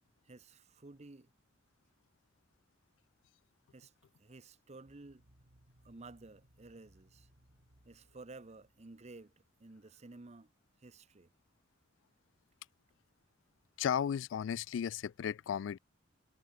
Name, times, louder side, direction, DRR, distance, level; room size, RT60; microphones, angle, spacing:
voice 1, 0.2-1.3 3.7-3.9 4.2-5.3 5.8-7.3 7.8-10.5 10.8-11.3, right 3 dB, 35° right, 0.8 m, -53 dB
sound 1, 4.9-9.5, right 1 dB, 65° right, 2.9 m, -67 dB
voice 2, 13.8-15.8, left 8 dB, 70° left, 0.3 m, -34 dB
head